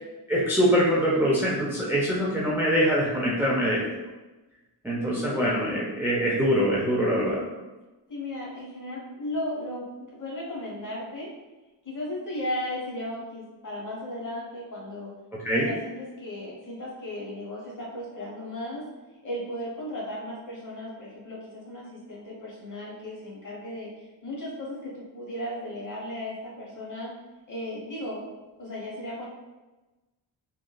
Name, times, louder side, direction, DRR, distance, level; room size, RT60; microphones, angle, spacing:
voice 1, 0.3-3.8 4.8-7.4 15.3-15.7, equal, 5° right, -6 dB, 0.4 m, -24 dB
voice 2, 5.0-5.6 7.2-7.6 8.1-11.3 11.8-15.1 15.5-18.8 19.2-23.9 24.2-27.1 27.5-28.2 28.6-29.2, left 1 dB, 45° left, -5 dB, 0.8 m, -36 dB
2.9 x 2.4 x 2.2 m, 1.1 s
wide cardioid pair, 110°, 42 cm